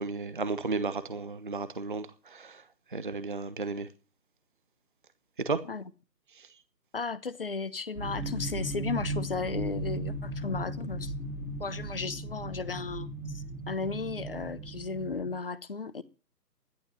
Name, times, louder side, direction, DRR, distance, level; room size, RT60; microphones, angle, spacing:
voice 1, 0.0-2.6 2.9-3.9 5.4-5.6 6.4-6.5, right 4 dB, 30° right, 0.9 m, -33 dB
voice 2, 6.9-11.1 11.6-16.0, left 4 dB, 35° left, 1.1 m, -35 dB
sound 1, 7.9-15.3, right 1 dB, 5° right, 2.5 m, -36 dB
14.0 x 11.5 x 7.2 m
figure-of-eight pair, 150°, 50 cm